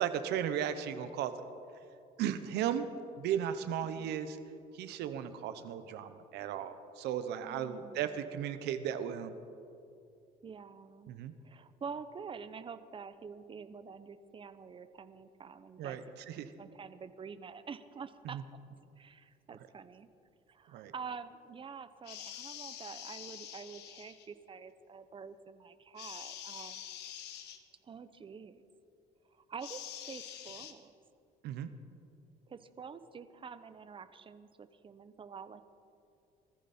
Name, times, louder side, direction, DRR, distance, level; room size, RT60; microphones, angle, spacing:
voice 1, 0.0-1.3 2.2-2.9 3.2-4.4 4.7-9.3 11.1-11.3 15.8-16.5 18.3-18.4 20.7-20.9 31.4-31.7, right 9 dB, 80° right, 10 dB, 1.1 m, -35 dB
voice 2, 7.4-8.1 10.4-11.1 11.4-16.0 16.3-18.4 19.0-20.1 20.5-26.9 27.8-28.6 29.3-30.9 32.5-35.6, right 6 dB, 30° right, 12 dB, 0.8 m, -47 dB
sound 1, 22.0-24.3 26.0-27.6 29.6-30.7, left 10 dB, 80° left, 1.3 m, -46 dB
21.0 x 14.0 x 4.4 m, 2.6 s
cardioid pair, 110°, 17 cm